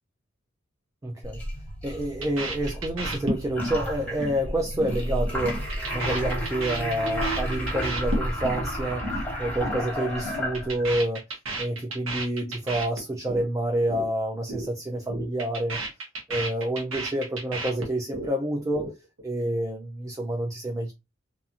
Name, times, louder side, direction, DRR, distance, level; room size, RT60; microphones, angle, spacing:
voice 1, 1.0-1.4 1.8-9.1 9.4-11.2 11.6-15.8 16.3-18.9 19.2-20.9, right 1 dB, 15° right, 0.3 m, -28 dB
sound 1, 1.2-11.0, equal, 5° left, 1.0 m, -31 dB
sound 2, 2.2-3.8 4.0-4.4 4.6-5.0 5.2-8.6 8.9-9.2 9.5-9.8 10.1-13.5 13.7-14.1 14.3-14.7 14.9-18.3 18.6-19.2, right 2 dB, 70° right, 0.9 m, -33 dB
2.5 x 2.4 x 2.7 m
head